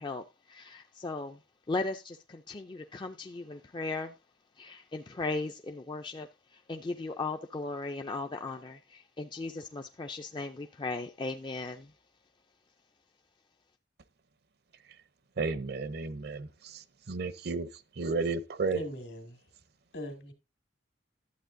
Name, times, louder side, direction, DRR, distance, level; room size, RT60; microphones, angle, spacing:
voice 1, 0.0-1.4 1.7-4.1 4.6-11.9, left 3 dB, 25° left, 0.4 m, -37 dB
voice 2, 15.4-17.7 18.0-18.8, right 4 dB, 55° right, 0.6 m, -33 dB
voice 3, 18.7-19.4 19.9-20.3, left 1 dB, 70° left, 2.0 m, -40 dB
11.5 x 8.0 x 2.6 m
head